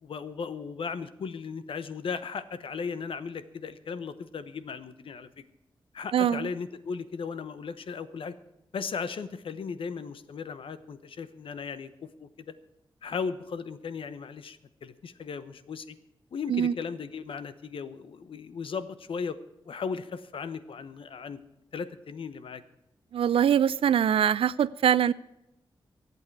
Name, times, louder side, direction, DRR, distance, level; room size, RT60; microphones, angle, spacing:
voice 1, 0.0-5.3 5.9-8.3 8.7-12.5 13.0-16.0 16.3-19.4 19.6-21.4 21.7-22.6, left 5 dB, 80° left, 12 dB, 1.0 m, -36 dB
voice 2, 6.1-6.5 16.5-16.7 23.1-25.1, right 9 dB, 90° right, 19 dB, 0.4 m, -23 dB
23.5 x 8.5 x 4.7 m, 0.92 s
wide cardioid pair, 100°, 9 cm